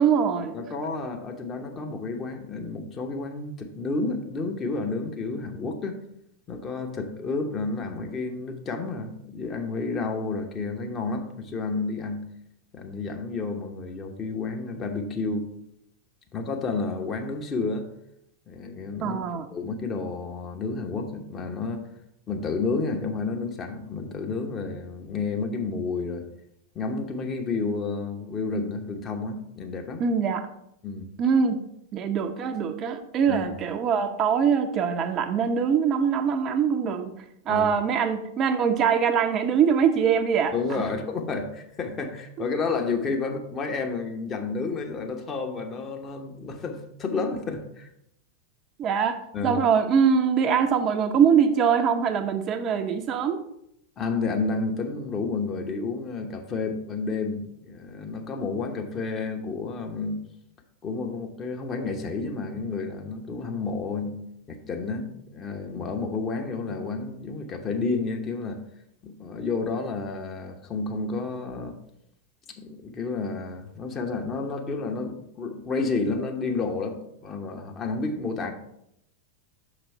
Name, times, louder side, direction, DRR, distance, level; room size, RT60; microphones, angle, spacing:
voice 1, 0.0-0.5 19.0-19.4 30.0-30.4 31.2-31.6 31.9-37.1 37.5-40.5 48.8-53.4, right 7 dB, 30° right, 7 dB, 0.6 m, -23 dB
voice 2, 0.5-6.0 6.5-12.2 12.7-15.5 16.3-17.9 18.5-19.2 19.5-21.8 22.3-26.3 26.7-30.1 30.8-31.1 33.3-33.6 37.5-37.7 40.5-47.9 49.3-49.6 54.0-60.2 60.8-64.2 64.5-68.6 69.0-71.8 72.6-78.5, left 4 dB, 25° left, 4 dB, 1.0 m, -30 dB
6.1 x 5.0 x 4.6 m, 0.76 s
figure-of-eight pair, 90°, 0 cm